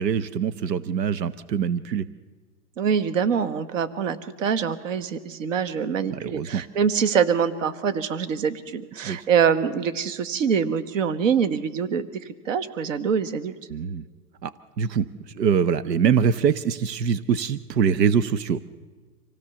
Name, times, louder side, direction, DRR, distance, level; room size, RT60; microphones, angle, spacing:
voice 1, 0.0-2.1 6.1-6.6 9.0-9.3 13.7-14.0 14.4-18.6, right 7 dB, 85° right, 14 dB, 1.0 m, -24 dB
voice 2, 2.8-13.5, right 7 dB, 50° right, 12 dB, 1.5 m, -24 dB
26.0 x 16.5 x 7.1 m, 1.4 s
hypercardioid pair, 160°, 48 cm